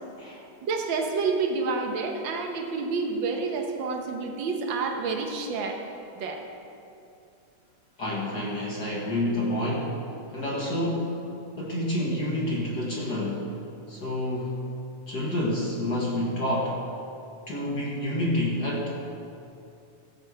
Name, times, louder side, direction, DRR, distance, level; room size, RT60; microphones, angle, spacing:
voice 1, 0.6-5.8 6.2-6.4 10.6-10.7, right 4 dB, 70° right, 3 dB, 1.1 m, -29 dB
voice 2, 8.0-9.9 10.3-11.2 11.5-13.5 13.9-14.6 15.1-16.8 17.5-18.9, left 1 dB, 45° left, -4 dB, 1.5 m, -28 dB
15.5 x 7.4 x 4.7 m, 2.7 s
omnidirectional pair, 3.4 m